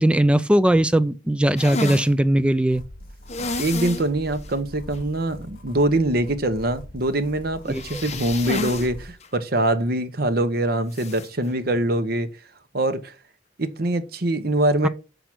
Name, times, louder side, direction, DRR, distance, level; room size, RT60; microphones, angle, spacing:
voice 1, 0.0-2.8 7.7-8.0, right 1 dB, 5° right, 0.3 m, -19 dB
sound 1, 1.6-2.1 3.3-4.1 4.4-4.5 4.9-5.0 7.7-8.9 9.2-9.3 10.9-11.3, left 2 dB, 40° left, 1.2 m, -30 dB
sound 2, 2.7-9.1, equal, 55° left, 2.2 m, -42 dB
voice 2, 3.6-12.3 12.7-13.1 13.6-14.9, right 1 dB, 60° right, 1.1 m, -23 dB
6.8 x 6.0 x 6.1 m
head